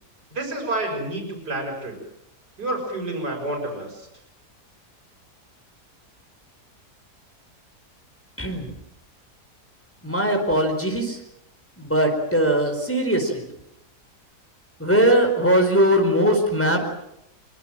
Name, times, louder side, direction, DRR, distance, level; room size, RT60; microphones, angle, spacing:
voice 1, 0.3-1.9 2.6-4.1, right 2 dB, 75° right, 2 dB, 6.7 m, -29 dB
voice 2, 10.0-11.2 11.8-13.4 14.8-16.8, equal, 5° left, 3 dB, 4.7 m, -20 dB
26.0 x 23.5 x 7.6 m, 0.80 s
omnidirectional pair, 1.8 m